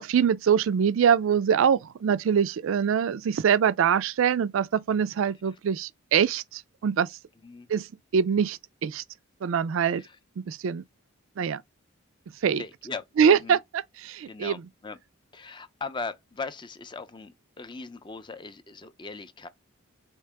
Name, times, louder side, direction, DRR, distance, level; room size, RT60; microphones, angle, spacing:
voice 1, 0.0-7.2 7.7-9.0 9.4-10.0 10.4-10.8 11.4-11.6 12.4-12.6 13.2-14.6, right 7 dB, 70° right, 0.3 m, -24 dB
voice 2, 12.6-13.0 13.3-13.6 14.3-15.0 15.3-19.5, left 4 dB, 20° left, 0.4 m, -39 dB
4.6 x 2.8 x 3.3 m
head